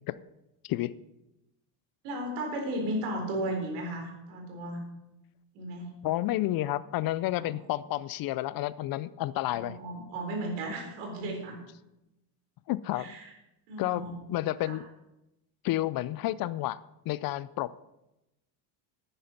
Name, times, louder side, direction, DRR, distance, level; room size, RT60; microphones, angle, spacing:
voice 1, 0.6-0.9 6.0-9.8 12.7-13.1 13.8-14.8 15.6-16.8 17.1-17.7, left 15 dB, 45° left, 18 dB, 0.4 m, -30 dB
voice 2, 2.0-4.8 5.5-5.9 7.4-7.5 9.5-11.6 13.0-13.3 13.7-14.1 14.7-14.8, right 1 dB, 75° right, 2 dB, 4.1 m, -35 dB
10.0 x 9.6 x 5.8 m, 0.91 s
supercardioid pair, 115°, 50 cm